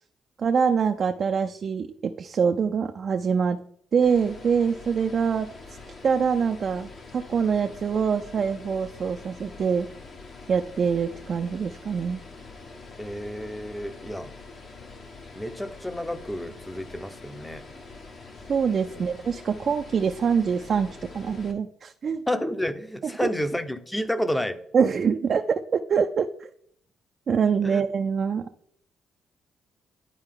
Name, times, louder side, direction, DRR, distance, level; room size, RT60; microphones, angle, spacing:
voice 1, 0.4-3.6 3.9-5.5 6.0-9.9 10.5-12.2 18.5-20.9 21.1-22.2 23.2-23.3 24.7-26.5 27.3-28.5, right 6 dB, 50° right, 5 dB, 0.4 m, -24 dB
sound 1, 4.0-21.5, left 3 dB, 55° left, 1.3 m, -44 dB
voice 2, 13.0-14.3 15.4-17.6 18.9-19.1 22.3-24.6 27.6-27.8, left 1 dB, 10° left, 11 dB, 0.7 m, -30 dB
10.5 x 4.4 x 3.7 m, 0.65 s
cardioid pair, 90°, 0 cm